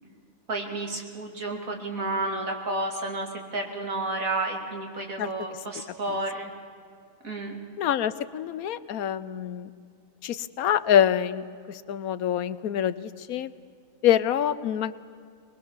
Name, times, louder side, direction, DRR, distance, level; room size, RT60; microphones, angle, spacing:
voice 1, 0.5-6.5 7.2-7.6, right 2 dB, 70° right, 1 dB, 3.2 m, -31 dB
voice 2, 7.8-9.7 10.2-13.5 14.0-14.9, left 10 dB, 80° left, 15 dB, 1.2 m, -25 dB
22.0 x 21.5 x 7.3 m, 2.3 s
omnidirectional pair, 1.5 m